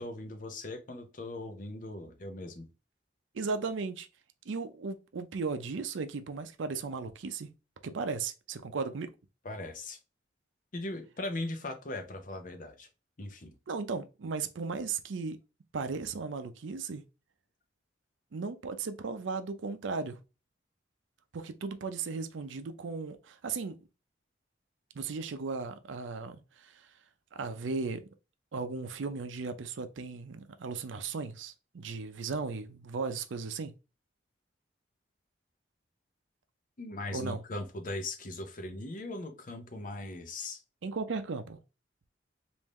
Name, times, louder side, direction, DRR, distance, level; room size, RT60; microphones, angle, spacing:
voice 1, 0.0-2.7 9.4-10.0 10.7-12.9 13.2-13.5 36.8-40.6, left 2 dB, 45° left, 0.6 m, -39 dB
voice 2, 3.3-4.1 4.5-7.5 7.8-9.1 13.7-15.4 15.7-17.0 18.3-20.2 21.3-23.8 24.9-26.9 27.3-28.0 28.5-33.7 37.1-37.4 40.8-41.6, right 4 dB, 80° right, 0.5 m, -36 dB
3.6 x 2.6 x 3.0 m
head